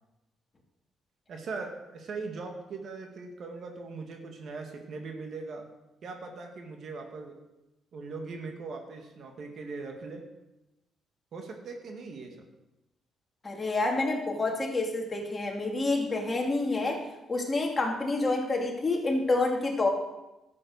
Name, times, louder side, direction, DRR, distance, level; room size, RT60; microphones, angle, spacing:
voice 1, 1.3-5.7 6.0-7.4 7.9-10.2 11.3-12.4, right 4 dB, 60° right, 4 dB, 2.0 m, -40 dB
voice 2, 13.4-17.0 17.3-19.9, left 2 dB, 25° left, 0 dB, 2.8 m, -28 dB
11.5 x 8.4 x 6.6 m, 0.97 s
cardioid pair, 90°, 0 cm